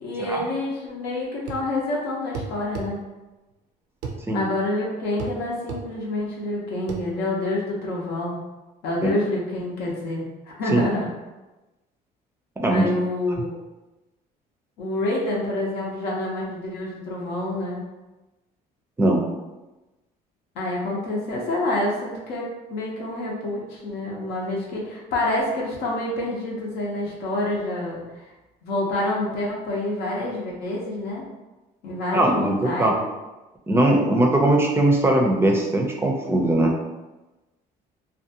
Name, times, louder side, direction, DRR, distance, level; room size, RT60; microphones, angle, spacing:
voice 1, 0.0-3.0 4.3-8.4 8.8-11.1 12.7-13.5 14.8-17.8 20.6-28.2 28.6-31.2 31.8-32.9, left 1 dB, 85° left, -4 dB, 0.6 m, -27 dB
sound 1, 1.5-1.7 2.3-2.9 4.0-4.2 5.2-5.4 5.7-5.9 6.9-7.1, right 5 dB, 85° right, 0.5 m, -32 dB
voice 2, 32.1-33.0 33.7-36.7, right 1 dB, 15° right, 1 dB, 0.4 m, -20 dB
2.5 x 2.2 x 2.7 m, 1.1 s
cardioid pair, 110°, 17 cm